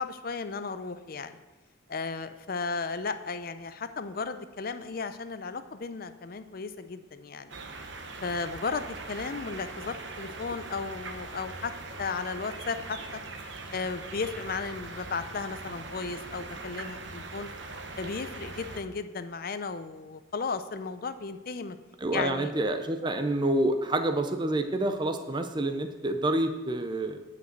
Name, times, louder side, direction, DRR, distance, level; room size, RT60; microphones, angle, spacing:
voice 1, 0.0-1.4 1.9-7.6 8.2-11.7 12.0-13.2 13.7-17.5 18.0-21.8 22.1-22.5, left 4 dB, 50° left, 11 dB, 0.5 m, -35 dB
sound 1, 7.5-18.8, right 3 dB, 60° right, 1.0 m, -41 dB
voice 2, 22.0-27.2, right 1 dB, 25° right, 7 dB, 0.5 m, -28 dB
9.0 x 5.3 x 8.0 m, 1.2 s
head